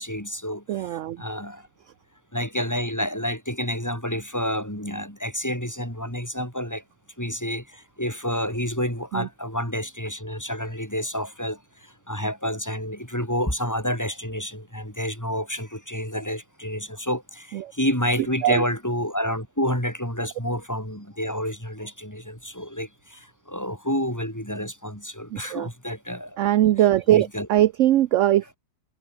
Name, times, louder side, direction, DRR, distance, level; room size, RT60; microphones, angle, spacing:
voice 1, 0.0-1.6 2.3-6.8 7.2-11.6 12.1-26.4 26.8-27.5, equal, 10° left, 6.7 m, -29 dB
voice 2, 0.7-1.2 9.1-9.3 17.6-17.7 18.4-18.6 25.3-25.7 26.4-28.5, right 13 dB, 65° right, 0.8 m, -20 dB
omnidirectional pair, 1.8 m